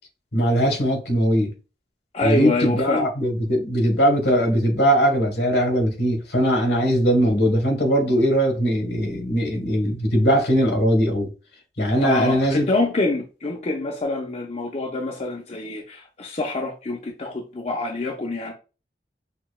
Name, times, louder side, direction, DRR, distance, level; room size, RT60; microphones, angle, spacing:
voice 1, 0.3-1.5 2.2-11.3 11.8-12.7, equal, 75° left, 1.3 m, -20 dB
voice 2, 2.1-3.0 12.0-18.5, left 2 dB, 35° left, 0.5 m, -26 dB
5.8 x 2.2 x 2.3 m
head